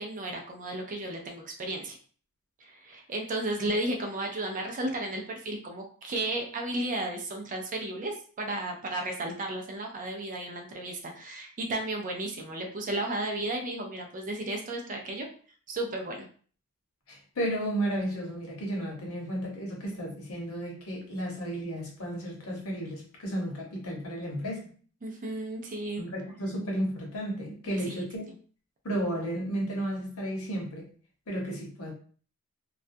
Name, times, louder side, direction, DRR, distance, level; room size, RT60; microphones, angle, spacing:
voice 1, 0.0-2.0 2.6-15.3 15.7-16.3 25.0-26.0 27.9-28.0, right 1 dB, 35° right, 3 dB, 0.4 m, -34 dB
voice 2, 17.1-24.7 26.0-28.2 28.8-30.9 31.3-31.9, right 1 dB, 65° left, -1 dB, 0.9 m, -33 dB
2.3 x 2.2 x 2.6 m, 0.43 s
head